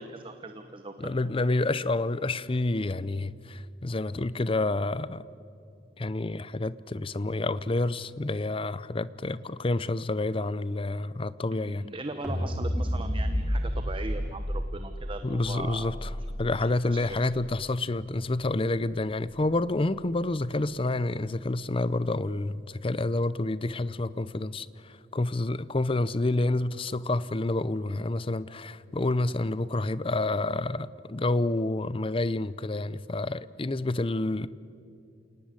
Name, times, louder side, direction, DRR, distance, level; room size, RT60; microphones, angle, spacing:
voice 1, 0.0-1.1 11.5-15.9 16.6-17.0, right 2 dB, 30° right, 1.0 m, -39 dB
voice 2, 1.0-5.3 6.0-11.9 15.2-16.1 16.4-34.5, left 2 dB, 30° left, 0.6 m, -29 dB
sound 1, 12.2-18.5, equal, 5° right, 4.1 m, -32 dB
28.5 x 18.5 x 9.9 m
head